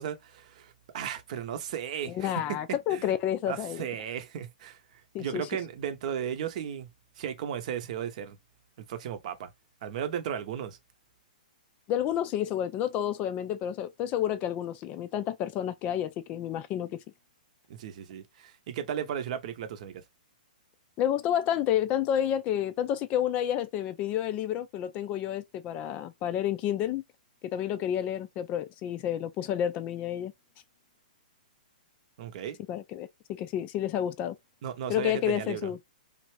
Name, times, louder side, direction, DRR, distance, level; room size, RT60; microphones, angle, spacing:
voice 1, 0.0-2.3 2.9-3.1 3.5-4.8 5.2-6.9 7.2-8.4 8.9-9.5 9.8-10.8 17.7-20.0 32.2-32.6 34.6-35.7, right 9 dB, 50° right, 0.7 m, -35 dB
voice 2, 2.1-3.9 5.1-5.5 11.9-17.0 21.0-27.0 27.5-30.3 32.7-33.1 33.4-34.4 34.9-35.8, left 10 dB, 30° left, 0.3 m, -30 dB
3.2 x 2.5 x 3.1 m
hypercardioid pair, 125°, 5 cm